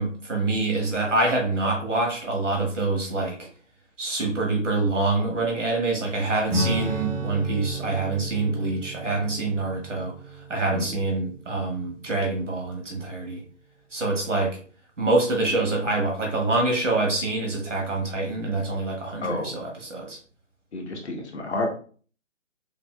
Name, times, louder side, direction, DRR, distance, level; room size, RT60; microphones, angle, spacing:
voice 1, 0.0-3.4 4.0-10.1 10.5-13.4 13.9-14.6 15.0-20.2, right 2 dB, 70° right, 0 dB, 1.7 m, -25 dB
Acoustic guitar / Strum, 6.5-12.4, right 2 dB, 10° right, 0.8 m, -33 dB
voice 2, 10.6-10.9 19.2-19.6 20.7-21.7, left 2 dB, 60° left, 2 dB, 1.2 m, -30 dB
5.9 x 2.5 x 2.3 m, 0.42 s
figure-of-eight pair, 140°, 38 cm